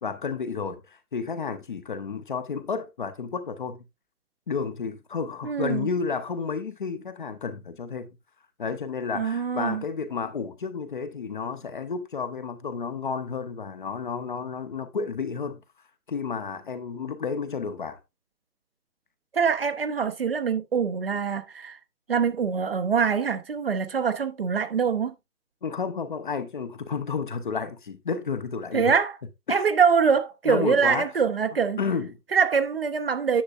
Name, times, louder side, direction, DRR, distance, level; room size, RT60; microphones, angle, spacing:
voice 1, 0.0-3.8 4.5-8.1 8.6-15.6 16.1-18.0 25.6-28.9 29.5-29.6 30.5-31.1 31.8-32.2, left 5 dB, 30° left, 0.9 m, -31 dB
voice 2, 5.4-5.9 9.1-9.8 19.3-21.8 22.1-25.1 28.7-29.1 29.5-31.8 32.3-33.4, right 6 dB, 40° right, 0.8 m, -24 dB
10.0 x 7.0 x 2.4 m
figure-of-eight pair, 150°, 47 cm